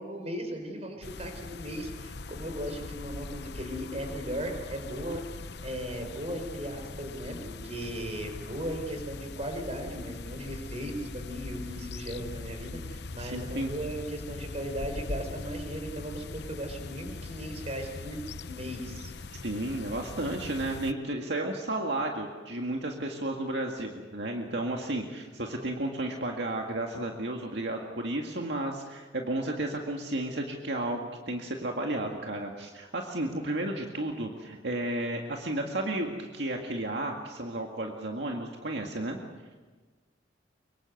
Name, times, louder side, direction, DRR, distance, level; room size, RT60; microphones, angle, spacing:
voice 1, 0.0-5.2 5.6-19.1, equal, 35° right, 5 dB, 4.7 m, -37 dB
sound 1, 1.0-20.9, left 3 dB, 65° left, 0.8 m, -41 dB
voice 2, 13.2-13.7 19.4-31.0 31.3-39.2, right 1 dB, 70° right, 1 dB, 2.0 m, -33 dB
24.5 x 23.0 x 8.0 m, 1.4 s
head